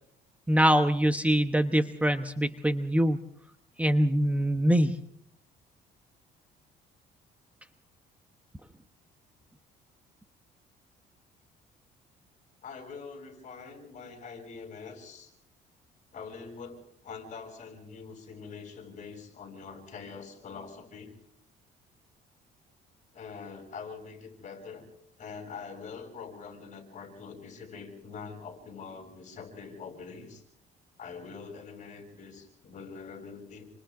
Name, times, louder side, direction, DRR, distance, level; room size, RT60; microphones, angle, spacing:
voice 1, 0.5-3.2 3.8-5.0, equal, 10° right, 8 dB, 1.0 m, -24 dB
voice 2, 12.6-15.3 16.1-21.1 23.1-24.9 25.2-30.4 31.0-33.6, left 5 dB, 45° left, 4 dB, 7.4 m, -44 dB
28.5 x 26.5 x 3.8 m, 0.71 s
cardioid pair, 110°, 17 cm